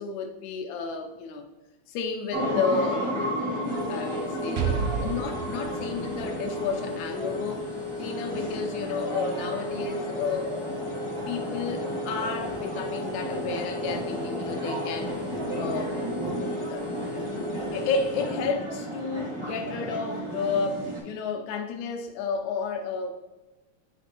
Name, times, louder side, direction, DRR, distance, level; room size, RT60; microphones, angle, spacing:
voice 1, 0.0-1.5 1.9-7.7 8.0-10.9 11.3-16.9 17.7-23.1, left 4 dB, 80° left, 5 dB, 2.0 m, -32 dB
sound 1, 2.3-21.0, equal, 45° right, 0.4 m, -33 dB
sound 2, 3.6-18.5, left 2 dB, 65° left, 1.1 m, -37 dB
Explosion, 4.6-8.3, right 7 dB, 80° right, 1.7 m, -33 dB
9.8 x 3.3 x 2.9 m, 1.1 s
omnidirectional pair, 3.3 m